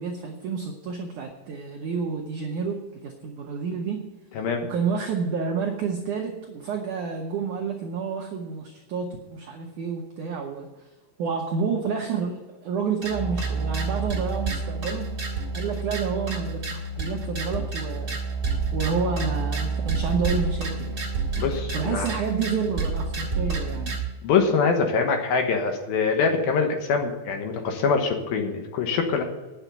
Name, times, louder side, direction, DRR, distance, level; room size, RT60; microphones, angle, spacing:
voice 1, 0.0-4.0 4.7-10.7 11.2-15.1 15.5-18.2 18.7-21.1 21.7-24.0, right 5 dB, 90° right, 1 dB, 1.7 m, -29 dB
sound 1, 13.0-24.0, right 4 dB, 30° right, 2.1 m, -29 dB
voice 2, 21.4-22.1 24.2-29.2, left 5 dB, 70° left, 4 dB, 2.7 m, -24 dB
9.6 x 7.2 x 9.1 m, 1.2 s
omnidirectional pair, 5.2 m